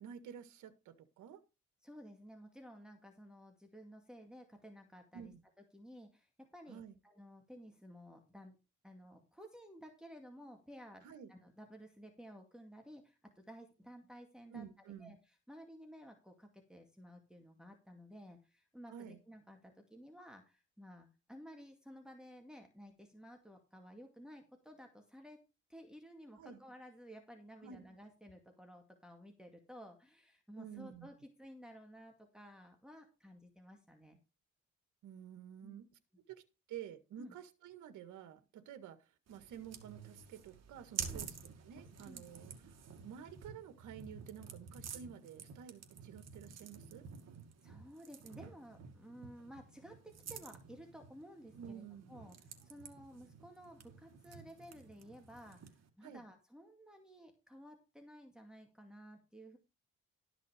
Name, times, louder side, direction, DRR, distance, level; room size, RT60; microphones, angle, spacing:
voice 1, 0.0-1.4 5.1-5.4 6.7-7.0 11.0-11.3 14.5-15.2 18.9-19.2 26.4-26.6 27.6-27.9 30.6-31.1 35.0-35.9 36.3-36.4 36.7-41.4 41.6-42.8 43.0-47.1 51.5-52.1 56.0-56.2, right 8 dB, 80° right, 1.7 m, -51 dB
voice 2, 1.8-5.3 5.7-8.6 8.8-15.2 15.5-25.4 25.7-34.2 35.6-35.8 37.2-37.3 41.1-41.3 42.1-42.2 47.6-51.8 52.1-59.6, equal, ahead, 2.2 m, -55 dB
sound 1, 39.3-55.9, right 7 dB, 60° right, 2.4 m, -50 dB
13.0 x 6.1 x 5.0 m
cardioid pair, 90°, 30 cm